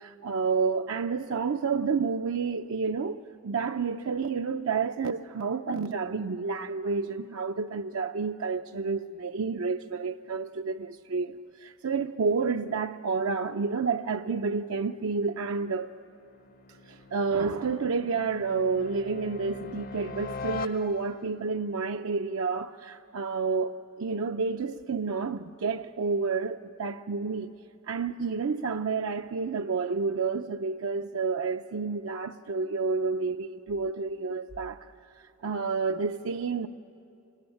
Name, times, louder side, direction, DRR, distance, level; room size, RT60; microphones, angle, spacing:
voice 1, 0.0-15.9 16.7-27.5 27.9-34.9 35.2-36.7, right 4 dB, 85° right, 0.5 m, -30 dB
sound 1, 15.0-21.4, left 4 dB, 45° left, 0.6 m, -42 dB
27.5 x 21.0 x 9.9 m
head